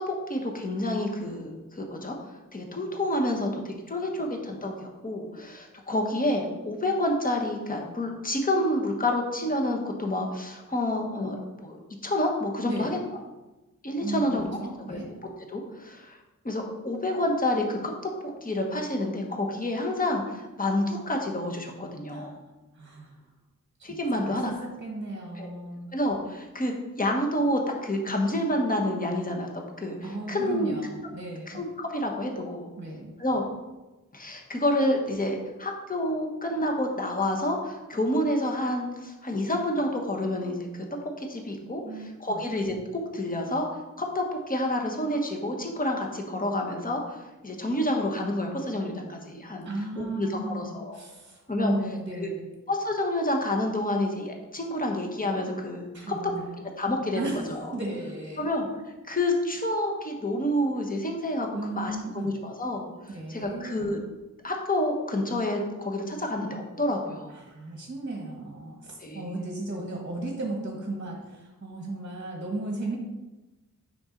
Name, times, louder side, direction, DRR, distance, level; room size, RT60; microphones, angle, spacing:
voice 1, 0.1-2.1 2.5-3.5 3.9-11.8 12.0-13.0 13.8-14.6 14.9-15.0 15.5-16.2 16.4-22.4 23.8-24.5 25.4-25.5 25.9-29.5 29.8-30.7 31.5-32.7 33.2-33.4 34.1-40.8 41.2-42.7 43.1-43.7 44.0-49.7 49.9-51.0 51.5-51.7 52.2-52.3 52.7-56.1 56.8-57.7 58.4-58.7 59.0-61.5 61.8-64.0 64.4-67.4 69.0-69.2, left 1 dB, 25° left, 1 dB, 1.1 m, -29 dB
voice 2, 12.7-13.0 14.0-15.1 22.1-22.3 22.7-23.1 24.1-25.9 30.0-31.6 32.8-33.2 41.8-42.4 49.6-52.5 55.9-56.6 57.1-57.4 57.7-58.5 61.5-62.3 63.1-63.9 67.3-73.0, right 2 dB, 35° right, 0 dB, 1.2 m, -35 dB
5.9 x 5.5 x 3.8 m, 1.1 s
wide cardioid pair, 75°, 33 cm